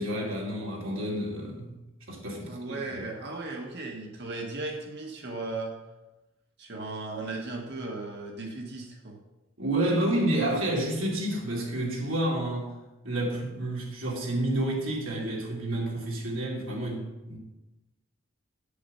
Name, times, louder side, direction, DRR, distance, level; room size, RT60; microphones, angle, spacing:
voice 1, 0.0-1.7 2.1-3.0 9.6-12.8 13.0-17.4, right 1 dB, 70° right, -2 dB, 2.7 m, -29 dB
voice 2, 2.5-5.8 6.6-9.2, right 2 dB, 55° right, 1 dB, 1.4 m, -36 dB
8.5 x 7.6 x 5.5 m, 1.0 s
head